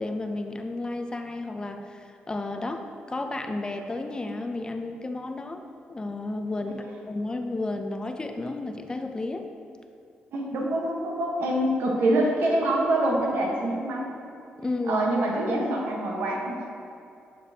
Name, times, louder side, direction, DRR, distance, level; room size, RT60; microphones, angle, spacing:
voice 1, 0.0-9.5 14.6-15.1, left 2 dB, 25° left, 5 dB, 0.5 m, -32 dB
voice 2, 10.3-14.1 14.9-16.6, right 1 dB, 90° right, -2 dB, 1.2 m, -25 dB
6.8 x 6.8 x 2.8 m, 2.5 s
cardioid pair, 90°, 4 cm